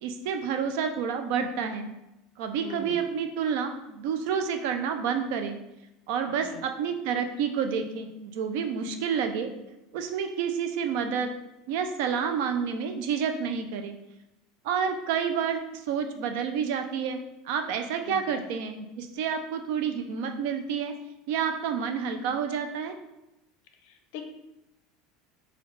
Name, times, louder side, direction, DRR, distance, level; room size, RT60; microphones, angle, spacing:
voice 1, 0.0-1.9 2.4-5.6 6.1-9.5 9.9-11.3 11.7-14.0 14.6-17.2 17.4-20.9 21.3-22.9, right 7 dB, 65° right, 6 dB, 0.4 m, -29 dB
voice 2, 2.6-3.0 6.3-6.7 18.1-18.4 23.8-24.2, left 5 dB, 60° left, 4 dB, 0.5 m, -41 dB
3.3 x 2.3 x 3.2 m, 0.91 s
cardioid pair, 165°, 0 cm